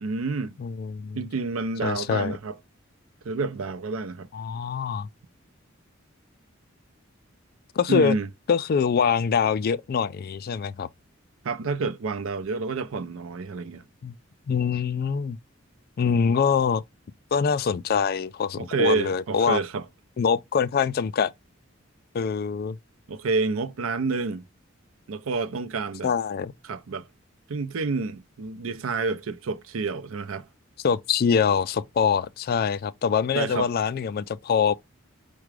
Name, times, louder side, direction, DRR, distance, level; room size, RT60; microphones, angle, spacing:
voice 1, 0.0-0.5 1.2-2.5 3.2-4.3 7.9-8.3 11.4-13.8 18.6-19.8 23.1-24.4 25.1-26.1 26.6-27.1 27.5-30.5 33.3-33.7, right 4 dB, 85° right, 0.5 m, -28 dB
voice 2, 0.6-1.2 1.8-2.4 4.3-5.1 7.8-8.2 8.5-10.9 14.0-14.1 14.5-15.4 16.0-16.8 17.3-19.6 20.2-21.3 22.1-22.8 26.0-26.5 30.8-34.8, left 6 dB, 50° left, 0.3 m, -24 dB
4.8 x 2.2 x 4.6 m
head